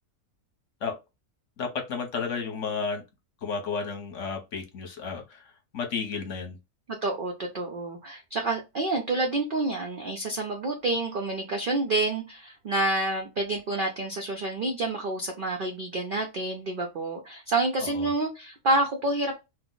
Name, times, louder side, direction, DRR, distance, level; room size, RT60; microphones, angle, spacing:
voice 1, 1.6-3.0 3.4-5.4 5.7-6.6 17.8-18.1, left 5 dB, 60° left, 1.0 m, -32 dB
voice 2, 7.0-19.3, right 2 dB, 85° right, 0.4 m, -28 dB
2.8 x 2.0 x 3.7 m
omnidirectional pair, 1.6 m